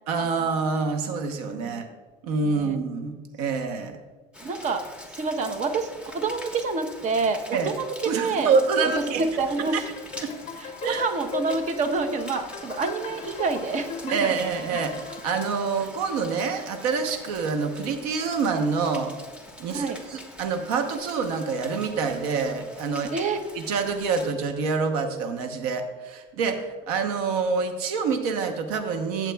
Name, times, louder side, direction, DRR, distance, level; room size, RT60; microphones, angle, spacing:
voice 1, 0.1-1.8 2.2-4.0 7.5-7.7 8.1-9.2 9.7-9.8 10.2-10.3 10.8-11.0 14.1-19.1 19.6-23.1 23.5-29.3, right 5 dB, 90° right, 7 dB, 0.9 m, -26 dB
voice 2, 1.5-1.8 2.4-2.8 4.4-4.8 5.1-8.6 8.8-9.8 10.6-14.4 15.8-15.9 19.7-20.0 23.1-23.4, right 4 dB, 40° right, 7 dB, 0.9 m, -28 dB
Rain, 4.3-24.3, left 1 dB, 5° right, 1.3 m, -44 dB
sound 1, 10.0-15.4, left 8 dB, 35° left, 0.6 m, -39 dB
14.5 x 7.3 x 2.3 m, 1.4 s
supercardioid pair, 105°, 19 cm